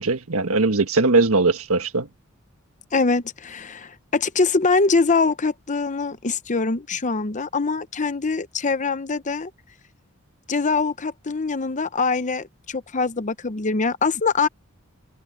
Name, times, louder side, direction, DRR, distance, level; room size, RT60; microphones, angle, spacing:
voice 1, 0.0-2.1, right 3 dB, 80° right, 1.5 m, -20 dB
voice 2, 2.9-9.5 10.5-14.5, left 4 dB, 35° left, 0.8 m, -23 dB
head